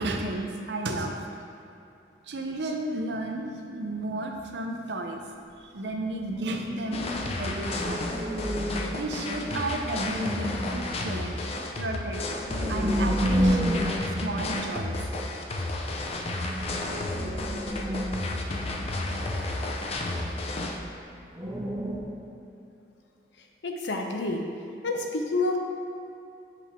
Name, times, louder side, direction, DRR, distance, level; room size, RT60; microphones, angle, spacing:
voice 1, 0.0-1.4 2.2-5.3 5.6-8.0 8.9-12.2 12.7-13.9 14.2-15.0, right 2 dB, 75° right, 3 dB, 0.6 m, -33 dB
sound 1, 6.2-15.2 15.5-15.6 15.9-20.0 20.4-20.5 21.3-22.0, equal, 20° right, 0.7 m, -31 dB
sound 2, 6.9-20.8, left 2 dB, 35° left, 0.5 m, -32 dB
voice 2, 23.6-24.4 24.8-25.6, left 2 dB, 85° left, 2 dB, 0.7 m, -28 dB
7.4 x 3.6 x 4.3 m, 2.7 s
head